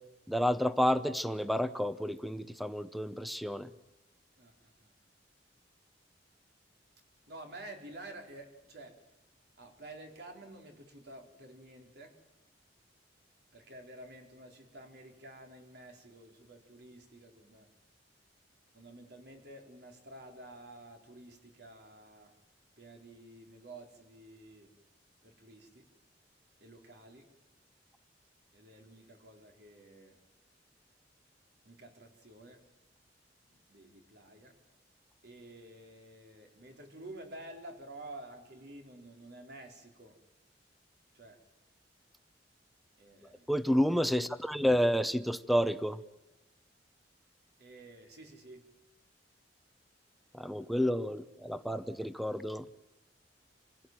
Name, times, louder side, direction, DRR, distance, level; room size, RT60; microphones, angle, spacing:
voice 1, 0.3-3.7 43.5-46.0 50.3-52.7, equal, ahead, 13 dB, 0.8 m, -30 dB
voice 2, 4.4-4.9 7.3-9.0 9.6-12.1 13.5-17.7 18.7-22.3 22.8-24.7 25.2-25.9 26.6-27.3 28.5-30.2 31.6-32.6 33.5-34.5 35.2-40.2 41.1-41.4 43.0-43.5 47.6-48.6, right 1 dB, 65° right, 3 dB, 4.2 m, -51 dB
27.5 x 16.0 x 9.2 m, 1.0 s
head